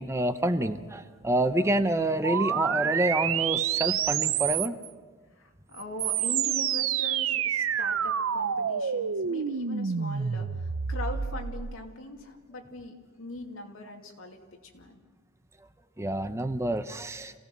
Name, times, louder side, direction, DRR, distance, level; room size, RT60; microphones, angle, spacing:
voice 1, 0.0-4.8 16.0-17.3, right 1 dB, 15° right, 9 dB, 0.8 m, -27 dB
sound 1, 2.2-4.9 5.8-11.7, right 8 dB, 80° right, 0.6 m, -28 dB
voice 2, 5.4-14.4 14.7-15.0, left 1 dB, 90° left, 2 dB, 2.5 m, -41 dB
27.0 x 17.0 x 6.0 m, 1.4 s
head